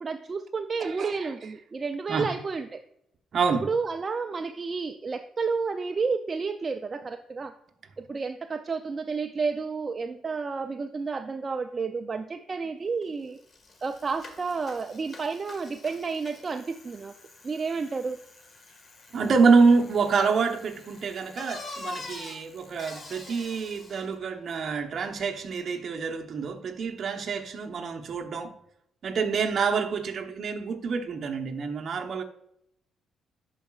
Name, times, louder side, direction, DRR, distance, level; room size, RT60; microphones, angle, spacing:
voice 1, 0.0-2.8 3.6-7.5 8.0-13.4 13.8-17.1 17.4-18.2, right 4 dB, 35° right, 0.4 m, -31 dB
voice 2, 0.8-1.3 2.1-2.3 3.3-3.7 19.1-28.5 29.0-32.2, right 5 dB, 55° right, 0.9 m, -26 dB
Bicycle, 13.0-13.1 13.4-24.1, left 2 dB, 40° left, 1.7 m, -45 dB
11.5 x 4.8 x 2.4 m
cardioid pair, 90°, 0 cm